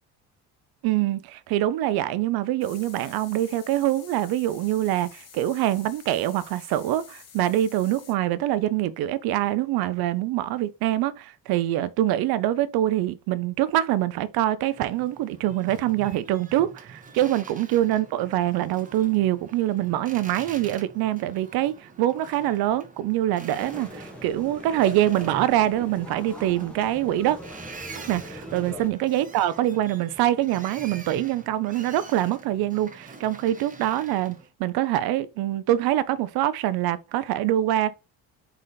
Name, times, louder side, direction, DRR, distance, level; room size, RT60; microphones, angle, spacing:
voice 1, 0.8-27.4 28.0-28.2 28.5-37.9, right 13 dB, 70° right, 0.6 m, -24 dB
sound 1, 2.6-8.2, left 7 dB, 40° left, 1.0 m, -49 dB
Boat Water vehicle, 14.7-34.5, right 4 dB, 20° right, 0.9 m, -45 dB
sound 2, 23.5-28.9, left 1 dB, 5° left, 1.0 m, -41 dB
3.9 x 3.2 x 3.9 m
supercardioid pair, 85°, 39 cm